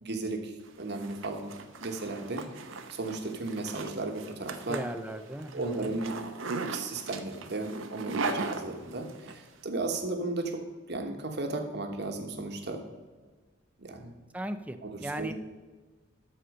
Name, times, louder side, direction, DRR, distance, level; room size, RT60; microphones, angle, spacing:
voice 1, 0.0-5.2 5.5-6.3 6.6-10.6 10.9-12.9 13.8-14.2 14.8-15.3, right 2 dB, 55° right, 4 dB, 1.3 m, -35 dB
Zipper (clothing), 0.7-9.4, right 3 dB, 75° right, 0.8 m, -38 dB
voice 2, 4.7-6.0 14.3-15.3, right 1 dB, 5° right, 9 dB, 0.5 m, -37 dB
13.0 x 4.3 x 6.5 m, 1.3 s
head